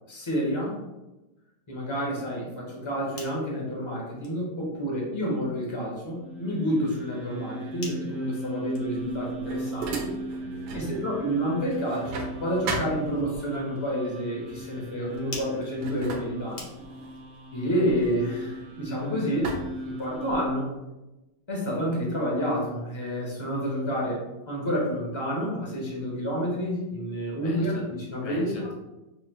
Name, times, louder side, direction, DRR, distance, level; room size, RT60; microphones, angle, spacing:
voice 1, 0.1-0.8 1.7-10.2 10.7-16.7 17.5-19.5 19.8-20.7 21.5-28.5, equal, 20° left, -3 dB, 0.9 m, -29 dB
sound 1, 3.0-17.2, left 2 dB, 45° left, 0.5 m, -50 dB
sound 2, 6.1-20.4, right 2 dB, 55° right, 0.9 m, -39 dB
sound 3, 8.9-10.9 11.3-13.6 14.5-14.7 15.1-18.9 19.4-20.6, right 3 dB, 75° right, 1.2 m, -37 dB
voice 2, 10.4-11.1 27.4-27.8 28.2-28.7, equal, 65° left, -3 dB, 1.5 m, -39 dB
5.6 x 3.0 x 2.2 m, 1.0 s
omnidirectional pair, 1.8 m